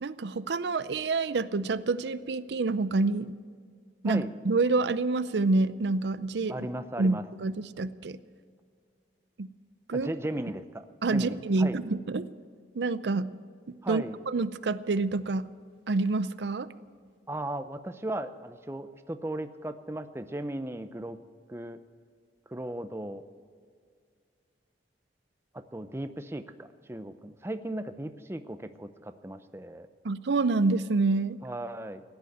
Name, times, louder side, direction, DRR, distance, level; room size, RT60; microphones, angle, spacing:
voice 1, 0.0-3.4 4.0-6.5 7.0-8.2 9.4-9.5 9.9-10.1 11.0-12.3 12.7-13.3 13.7-15.5 15.9-16.7 30.0-31.4, right 3 dB, 80° right, 15 dB, 0.6 m, -27 dB
voice 2, 6.5-7.2 9.9-10.9 11.1-11.8 13.8-14.2 17.3-21.2 21.5-21.8 22.5-23.2 25.5-29.9 31.4-32.0, right 1 dB, 15° right, 10 dB, 0.6 m, -36 dB
16.5 x 10.5 x 8.0 m, 2.1 s
head